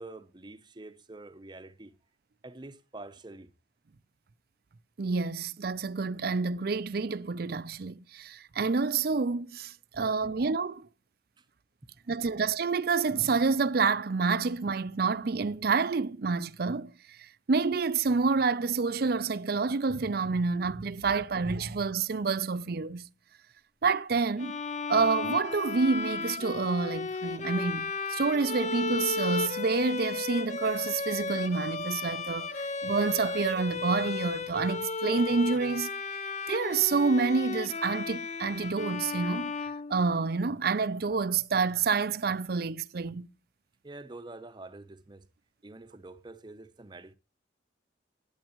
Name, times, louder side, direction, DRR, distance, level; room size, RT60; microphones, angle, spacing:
voice 1, 0.0-1.9 2.4-3.5 10.2-10.3 11.4-11.5 12.2-12.3 43.8-45.3 45.6-47.1, right 2 dB, 25° right, 0.8 m, -46 dB
voice 2, 5.0-10.9 12.1-16.9 17.2-23.1 23.8-24.6 24.9-35.9 36.5-39.5 39.9-43.3, right 4 dB, 55° right, 0.5 m, -28 dB
Bowed string instrument, 24.4-40.4, left 4 dB, 40° left, 0.6 m, -34 dB
16.0 x 8.9 x 3.0 m
head